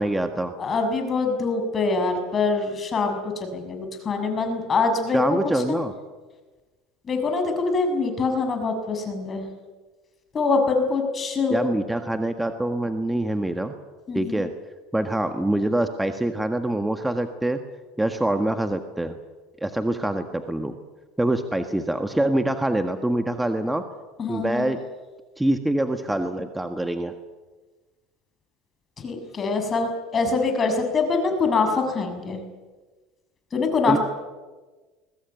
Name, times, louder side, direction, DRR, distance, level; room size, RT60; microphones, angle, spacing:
voice 1, 0.0-0.5 5.1-5.9 11.5-13.8 14.1-14.5 14.9-17.6 18.0-19.2 19.6-20.7 21.2-23.8 24.3-24.8 25.4-27.1 33.9-34.0, right 1 dB, 5° right, 7 dB, 1.6 m, -25 dB
voice 2, 0.6-5.2 5.5-5.8 7.1-9.5 10.3-11.7 14.1-14.5 24.2-24.7 29.0-32.4 33.5-34.0, left 4 dB, 30° left, 5 dB, 6.5 m, -24 dB
22.0 x 19.0 x 9.3 m, 1.3 s
supercardioid pair, 105°, 0 cm